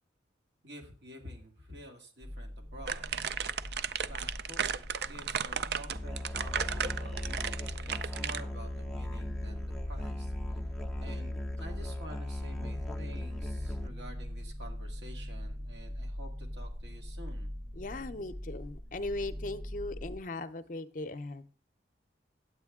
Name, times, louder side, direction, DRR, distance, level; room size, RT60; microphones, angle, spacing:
voice 1, 0.6-3.1 4.0-10.6 11.0-11.3 11.6-17.5, right 1 dB, 75° right, 2 dB, 2.2 m, -50 dB
sound 1, 2.2-20.2, equal, 40° right, 1.1 m, -42 dB
sound 2, 2.9-8.4, right 7 dB, 60° right, 0.4 m, -34 dB
Musical instrument, 5.9-13.9, left 1 dB, ahead, 0.5 m, -38 dB
voice 2, 17.8-21.5, left 2 dB, 45° left, 11 dB, 0.6 m, -38 dB
9.6 x 8.2 x 3.6 m, 0.39 s
head